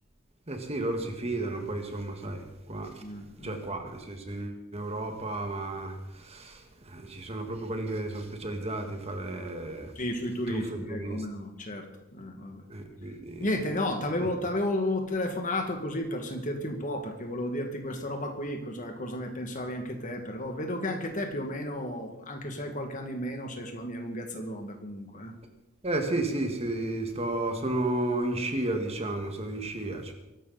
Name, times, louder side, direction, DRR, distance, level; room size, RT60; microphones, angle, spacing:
voice 1, 0.5-3.0 3.4-9.9 10.5-11.3 12.7-13.5 14.2-14.3 25.8-30.1, right 2 dB, 30° right, 4 dB, 1.8 m, -33 dB
voice 2, 3.0-3.6 10.0-12.6 13.4-25.3, left 1 dB, 40° left, 4 dB, 2.2 m, -33 dB
23.0 x 12.0 x 4.2 m, 0.98 s
head